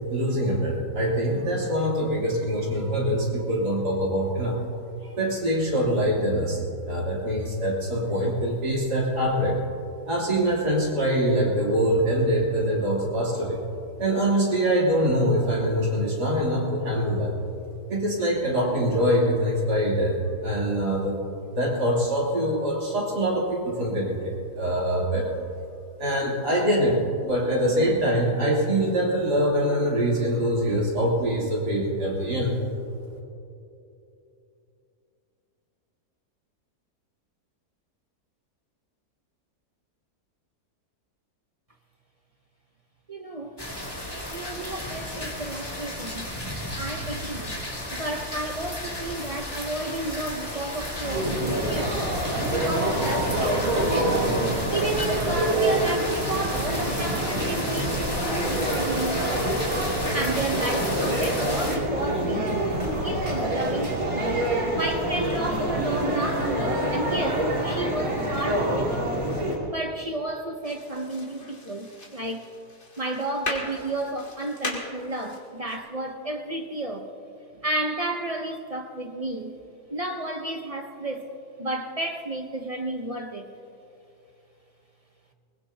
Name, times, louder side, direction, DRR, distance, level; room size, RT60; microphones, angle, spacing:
voice 1, 0.1-4.6 5.0-6.6 6.9-9.6 10.1-13.6 14.0-17.3 17.9-20.1 20.4-21.2 21.5-25.3 26.0-32.6, equal, 80° right, -5 dB, 3.8 m, -24 dB
voice 2, 43.1-43.6 44.3-46.3 46.8-47.5 47.9-52.1 52.5-54.2 54.7-59.6 60.1-64.4 64.7-69.2 69.7-72.5 73.0-77.1 77.5-79.5 79.9-81.3 81.6-83.5, right 2 dB, 35° right, 4 dB, 0.6 m, -32 dB
sound 1, 43.6-61.8, left 1 dB, 15° left, 2.0 m, -33 dB
sound 2, 51.0-69.6, right 1 dB, 60° right, 3.2 m, -26 dB
sound 3, 70.6-75.8, left 2 dB, 45° left, 2.4 m, -38 dB
21.5 x 20.5 x 2.8 m, 2.8 s
omnidirectional pair, 1.7 m